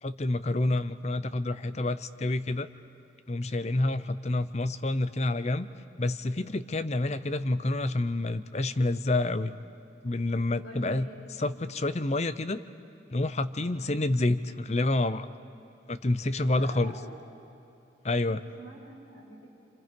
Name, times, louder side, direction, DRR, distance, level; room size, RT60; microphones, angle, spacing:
voice 1, 0.0-2.7 3.3-5.7 6.0-9.5 10.0-11.1 11.4-12.6 13.1-15.3 15.9-17.0 18.0-18.4, left 2 dB, 35° left, 13 dB, 0.7 m, -28 dB
voice 2, 10.6-11.2 16.6-17.1 18.3-19.5, right 2 dB, 90° left, -1 dB, 5.0 m, -46 dB
29.5 x 26.5 x 5.3 m, 2.8 s
head